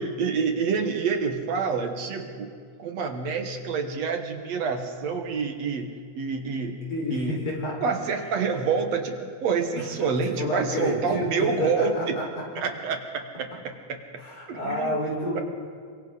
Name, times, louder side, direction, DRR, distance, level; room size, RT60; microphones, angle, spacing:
voice 1, 0.0-2.5 2.8-6.8 7.1-7.4 7.8-12.2 12.6-13.5 13.9-14.0 14.5-15.0 15.3-15.4, right 5 dB, 65° right, 5 dB, 2.4 m, -27 dB
voice 2, 6.9-7.8 10.4-12.2 14.2-15.4, left 1 dB, 65° left, -2 dB, 6.1 m, -29 dB
28.0 x 24.5 x 4.0 m, 2.2 s
omnidirectional pair, 3.4 m